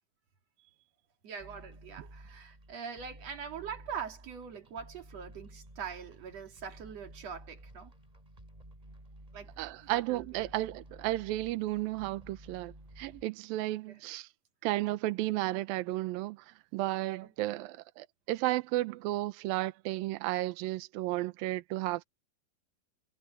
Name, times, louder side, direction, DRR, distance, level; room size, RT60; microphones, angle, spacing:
voice 1, 1.2-7.9 9.3-9.5 9.8-10.5 13.7-14.0 17.2-17.3, right 7 dB, 50° right, 3.0 m, -43 dB
sound 1, 1.4-13.2, right 1 dB, 10° right, 3.5 m, -53 dB
voice 2, 9.6-14.3 14.6-16.4 16.7-22.0, right 17 dB, 75° right, 2.6 m, -33 dB
omnidirectional pair, 4.3 m